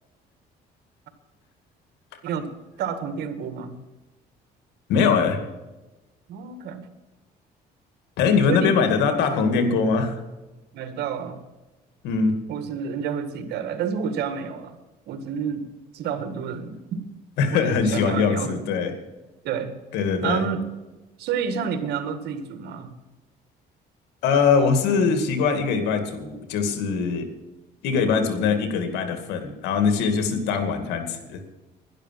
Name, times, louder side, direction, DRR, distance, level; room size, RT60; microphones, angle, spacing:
voice 1, 2.8-3.8 6.3-6.9 8.5-8.9 10.7-11.4 12.5-14.8 15.1-15.6 15.9-17.0 17.5-18.6 19.4-19.7 20.2-20.6 21.2-22.9, right 7 dB, 75° right, 9 dB, 1.8 m, -29 dB
voice 2, 4.9-5.4 8.2-10.2 12.0-12.4 17.4-18.9 19.9-20.4 24.2-27.3 27.8-31.4, left 5 dB, 90° left, 7 dB, 2.2 m, -22 dB
12.0 x 11.0 x 7.5 m, 1.1 s
cardioid pair, 110°, 17 cm